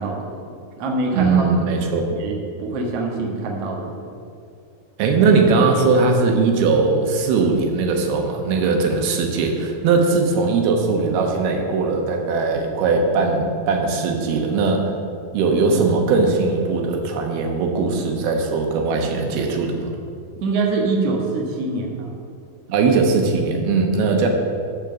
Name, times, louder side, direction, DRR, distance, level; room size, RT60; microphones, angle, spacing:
voice 1, 0.0-1.4 2.1-4.2 20.4-22.1, right 3 dB, 55° right, -1 dB, 2.0 m, -25 dB
voice 2, 1.1-2.1 5.0-14.9 15.3-19.9 22.7-24.3, right 4 dB, 90° right, 2 dB, 3.1 m, -19 dB
14.0 x 5.1 x 6.9 m, 2.4 s
omnidirectional pair, 4.3 m